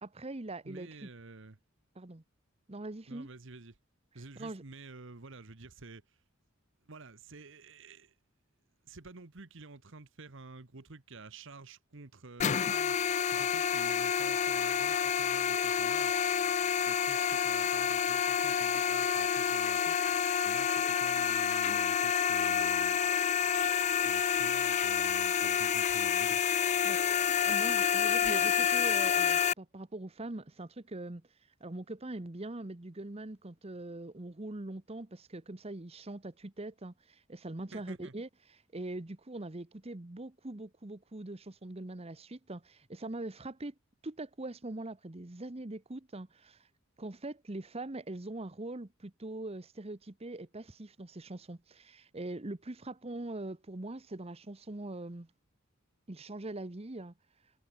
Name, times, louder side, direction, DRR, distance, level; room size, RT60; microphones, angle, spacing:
voice 1, 0.0-1.1 2.0-2.2 2.7-3.3 4.4-4.6 26.8-27.0 27.4-31.2 31.6-43.7 44.0-46.7 47.0-55.3 56.1-57.1, right 2 dB, 30° right, 1.0 m, -42 dB
voice 2, 0.6-1.6 3.1-3.8 4.1-6.0 6.9-8.1 8.8-13.0 13.3-16.2 16.9-20.0 20.4-23.0 24.0-26.4 37.7-38.1, right 3 dB, 65° right, 1.3 m, -50 dB
sound 1, 12.4-29.5, left 8 dB, 35° left, 0.4 m, -28 dB
head